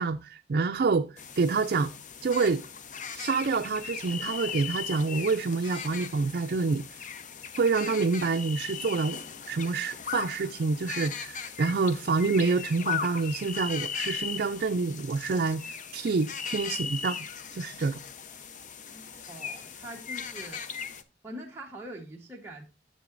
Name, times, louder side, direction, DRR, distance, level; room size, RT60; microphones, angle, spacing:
voice 1, 0.0-1.9 2.2-2.6 3.1-7.0 7.6-9.2 9.5-17.2 17.5-18.0, right 4 dB, 55° right, 0.4 m, -27 dB
sound 1, 1.2-21.0, left 7 dB, 45° left, 0.6 m, -38 dB
voice 2, 18.9-20.7 21.2-22.6, right 1 dB, 15° right, 1.0 m, -43 dB
10.0 x 6.8 x 2.5 m
head